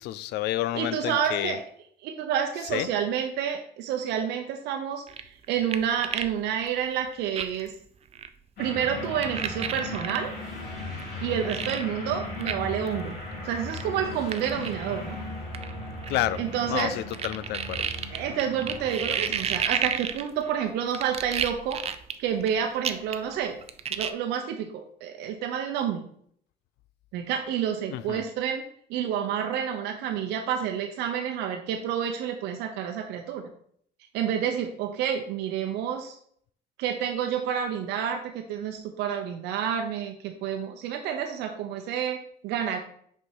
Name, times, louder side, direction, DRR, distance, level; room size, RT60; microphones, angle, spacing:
voice 1, 0.0-1.6 2.7-2.9 16.1-16.4 16.7-17.9 27.9-28.2, left 14 dB, 80° left, 0.4 m, -29 dB
voice 2, 0.7-1.6 2.0-7.7 8.6-10.3 11.2-13.2 13.4-15.2 16.4-16.9 18.1-21.8 22.2-23.6 23.9-26.0 27.1-28.6 28.9-33.5 34.1-36.1 36.8-42.8, right 8 dB, 85° right, 0.8 m, -29 dB
sound 1, 5.1-6.3 6.6-6.7 7.4-7.7 8.1-8.3 9.2-10.2 11.0-11.1 11.5-11.8 12.4-12.6 12.9-13.0 13.7-13.8 14.3-14.7 15.5-16.8 17.1-20.5 20.9-22.5 22.8-23.3 23.6-24.1, right 8 dB, 40° right, 0.5 m, -30 dB
sound 2, 8.6-20.0, left 2 dB, 65° left, 2.5 m, -37 dB
5.8 x 4.5 x 4.5 m
cardioid pair, 110°, 17 cm